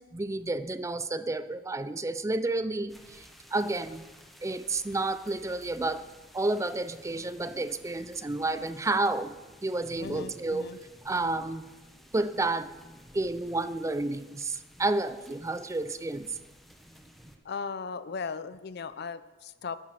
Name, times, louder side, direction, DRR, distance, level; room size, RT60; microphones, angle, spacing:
voice 1, 0.0-3.2 3.5-4.0 4.4-6.0 6.3-9.4 9.6-10.7 11.0-11.6 12.1-12.7 13.1-16.3, right 2 dB, 15° right, 13 dB, 0.4 m, -30 dB
sound 1, 2.9-17.4, equal, ahead, 1.0 m, -53 dB
voice 2, 10.0-10.8 17.4-19.8, left 5 dB, 60° left, 14 dB, 0.6 m, -37 dB
11.0 x 9.9 x 6.3 m, 1.2 s
head